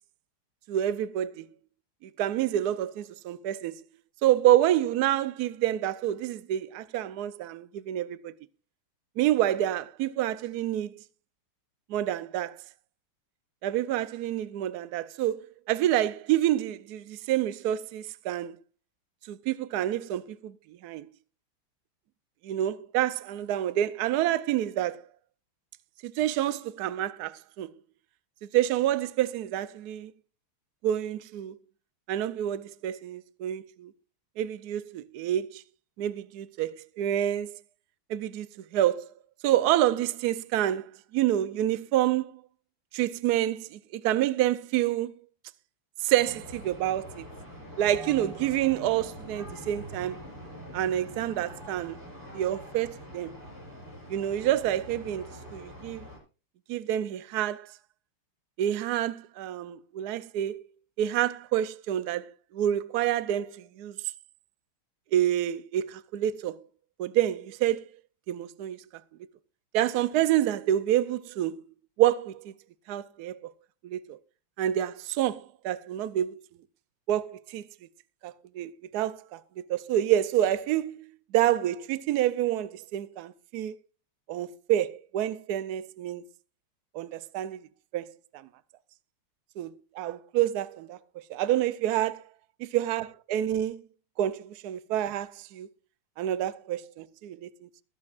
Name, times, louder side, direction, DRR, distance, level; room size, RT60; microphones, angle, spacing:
voice 1, 0.7-1.5 2.0-3.7 4.2-8.3 9.2-10.9 11.9-12.6 13.6-18.6 19.3-20.6 20.8-21.1 22.4-25.0 26.0-27.7 28.5-30.1 30.8-31.5 32.1-33.9 34.4-35.6 36.0-37.5 38.1-38.5 38.7-39.1 39.4-40.9 41.1-42.3 42.9-45.1 46.0-47.3 47.8-50.2 50.7-52.0 52.3-53.3 54.1-56.0 56.7-57.7 58.6-60.7 61.0-64.0 65.1-66.6 67.0-67.8 68.3-68.8 69.7-71.5 72.0-72.5 72.9-73.4 73.8-74.2 74.6-76.4 77.1-77.6 78.2-79.4 79.7-81.1 81.3-83.8 84.3-86.2 86.9-87.6 87.9-88.1 89.6-91.0 91.3-92.2 92.6-93.8 94.2-95.7 96.2-97.5, right 12 dB, 75° right, 0.9 m, -28 dB
sound 1, 46.2-56.2, equal, 10° right, 7.3 m, -44 dB
22.5 x 8.4 x 2.5 m
omnidirectional pair, 2.4 m